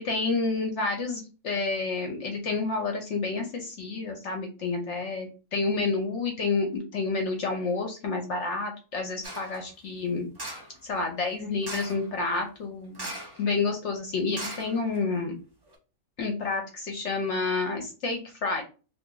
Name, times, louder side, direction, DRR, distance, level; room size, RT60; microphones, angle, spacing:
voice 1, 0.0-10.3 10.8-13.1 13.4-15.3 16.2-18.6, left 3 dB, 60° left, 3 dB, 0.8 m, -29 dB
sound 1, 9.2-9.6 10.4-10.8 11.6-12.1 12.9-13.5 13.7-13.8 14.3-15.2 15.7-15.8, right 1 dB, 40° right, 0.3 m, -38 dB
2.6 x 2.5 x 3.7 m, 0.35 s
omnidirectional pair, 1.7 m